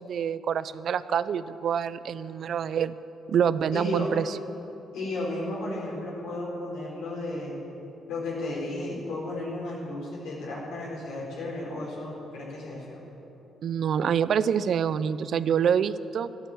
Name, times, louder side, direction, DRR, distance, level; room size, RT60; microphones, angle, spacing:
voice 1, 0.0-2.9 3.3-4.4 13.6-16.3, right 8 dB, 60° right, 15 dB, 0.5 m, -26 dB
voice 2, 3.7-4.1 4.9-7.6 8.1-13.0, left 2 dB, 85° left, -6 dB, 4.3 m, -34 dB
13.0 x 11.5 x 7.7 m, 3.0 s
cardioid pair, 90°, 0 cm